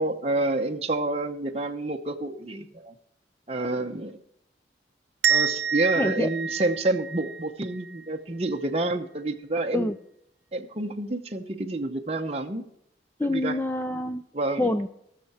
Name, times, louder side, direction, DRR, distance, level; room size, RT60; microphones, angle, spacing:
voice 1, 0.0-2.9 3.5-4.2 5.3-9.9 10.5-12.6 13.2-13.6 14.3-14.7, right 2 dB, 35° right, 3 dB, 0.8 m, -28 dB
sound 1, 5.2-8.0, right 7 dB, 75° right, 0.8 m, -27 dB
voice 2, 5.9-6.3 9.7-10.0 13.2-14.2 14.6-14.9, left 1 dB, 10° left, 10 dB, 0.3 m, -26 dB
19.0 x 6.6 x 4.2 m, 0.77 s
head